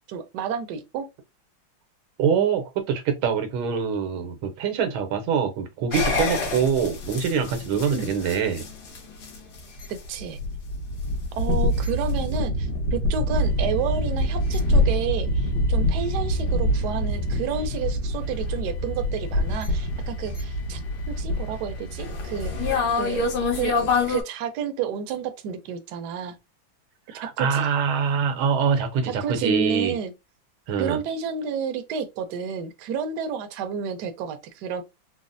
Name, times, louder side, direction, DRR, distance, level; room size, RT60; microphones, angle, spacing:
voice 1, 0.1-1.1 7.8-8.1 10.1-10.4 11.4-20.8 21.1-23.3 23.5-26.4 27.1-27.7 29.2-30.1 30.8-34.8, right 7 dB, 70° right, 1.1 m, -31 dB
voice 2, 2.2-8.7 27.1-30.0 30.7-31.0, right 6 dB, 85° right, 1.6 m, -24 dB
sound 1, 5.9-24.2, left 1 dB, 70° left, 1.7 m, -26 dB
4.0 x 2.0 x 2.5 m
omnidirectional pair, 2.2 m